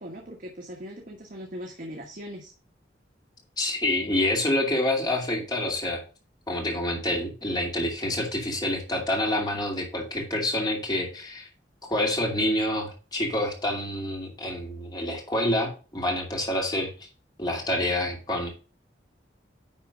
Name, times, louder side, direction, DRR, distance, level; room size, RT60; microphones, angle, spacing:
voice 1, 0.0-2.5, equal, 50° right, 1 dB, 1.3 m, -40 dB
voice 2, 3.6-6.0 6.5-11.5 11.8-17.1 17.4-18.5, left 1 dB, 25° left, 0 dB, 2.5 m, -27 dB
10.0 x 3.7 x 5.1 m, 0.35 s
head